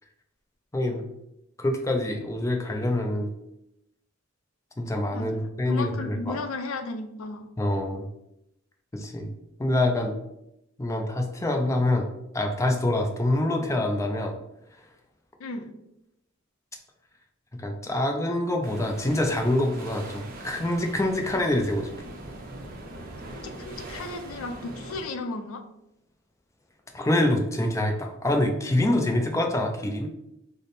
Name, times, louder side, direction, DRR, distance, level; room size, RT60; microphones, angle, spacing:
voice 1, 0.7-1.0 1.6-3.3 4.8-6.4 7.6-8.1 8.9-9.3 9.6-10.1 10.8-12.1 12.3-14.3 17.6-21.9 26.9-30.1, left 1 dB, 15° left, 3 dB, 0.4 m, -25 dB
voice 2, 5.1-7.5 15.4-15.7 23.3-25.6, left 3 dB, 80° left, 7 dB, 0.4 m, -35 dB
sound 1, 18.6-25.1, right 2 dB, 45° right, 0.5 m, -41 dB
3.3 x 2.0 x 4.0 m, 0.83 s
head